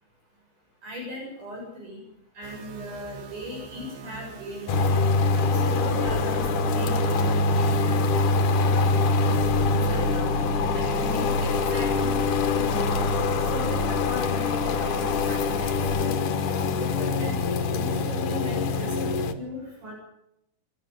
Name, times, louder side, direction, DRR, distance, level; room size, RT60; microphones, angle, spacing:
voice 1, 0.8-2.0 2.4-5.0 5.3-8.0 8.5-8.8 9.3-9.4 9.6-10.3 10.7-13.0 13.5-15.7 16.0-16.3 16.6-17.4 17.7-19.1 19.4-19.9, left 1 dB, 65° right, -2 dB, 9.1 m, -38 dB
sound 1, 2.4-18.7, right 4 dB, 85° right, 3.8 m, -44 dB
sound 2, 4.7-19.3, left 3 dB, 70° left, 2.8 m, -24 dB
sound 3, 5.3-16.0, left 4 dB, 40° left, 3.1 m, -38 dB
24.0 x 12.5 x 9.5 m, 0.78 s
omnidirectional pair, 3.9 m